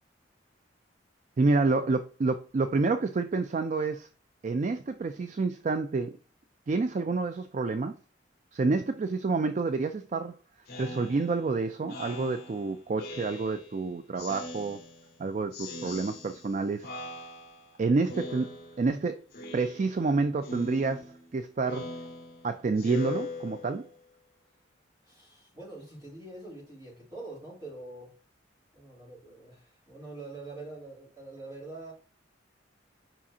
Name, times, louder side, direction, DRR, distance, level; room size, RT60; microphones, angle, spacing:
voice 1, 1.4-4.1 4.4-6.2 6.7-8.0 8.5-10.3 10.8-14.8 15.2-16.9 17.8-19.2 19.5-22.0 22.4-23.9, right 3 dB, 40° right, 0.3 m, -28 dB
Speech synthesizer, 10.7-13.8 14.2-15.2 15.5-16.5 16.8-17.7 18.1-19.0 19.3-20.1 20.4-24.0, left 2 dB, 50° left, 1.8 m, -41 dB
voice 2, 25.0-28.1 28.7-31.9, right 2 dB, 20° right, 3.5 m, -44 dB
7.3 x 5.0 x 2.8 m
head